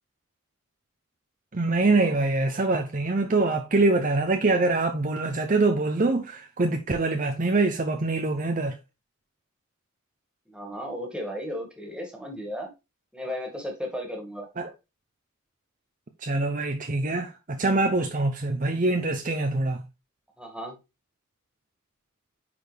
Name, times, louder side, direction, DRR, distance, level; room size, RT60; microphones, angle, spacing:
voice 1, 1.5-8.8 14.6-14.7 16.2-19.8, right 2 dB, 40° right, 0.7 m, -24 dB
voice 2, 10.5-12.7 13.1-14.5 20.4-20.8, equal, 5° right, 2.0 m, -35 dB
9.5 x 4.2 x 3.4 m
head